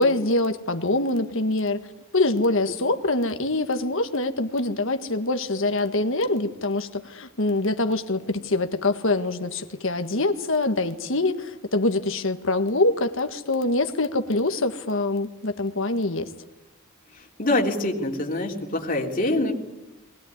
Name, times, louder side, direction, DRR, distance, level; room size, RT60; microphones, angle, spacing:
voice 1, 0.0-1.8 2.1-16.3, left 2 dB, 60° left, 8 dB, 1.7 m, -24 dB
voice 2, 17.4-19.5, left 1 dB, 40° left, 1 dB, 3.4 m, -24 dB
21.0 x 20.5 x 9.6 m, 0.99 s
head